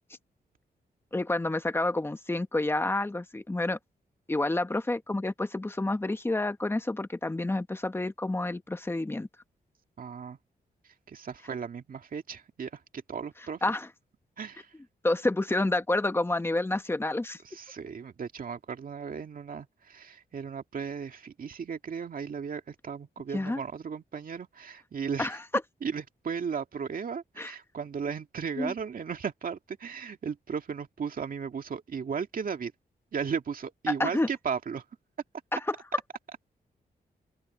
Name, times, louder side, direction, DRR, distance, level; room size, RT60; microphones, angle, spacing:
voice 1, 1.1-3.8 4.3-9.3 13.6-13.9 15.0-17.4 23.3-23.6 25.2-25.4 27.4-27.5 28.6-28.7 34.0-34.3 35.5-35.6, left 2 dB, 15° left, 1.2 m, -29 dB
voice 2, 10.0-10.4 11.1-12.8 13.1-13.6 14.4-14.7 17.4-25.4 25.8-32.7 33.1-34.8, right 6 dB, 55° right, 2.1 m, -35 dB
open air
wide cardioid pair, 120°, 17 cm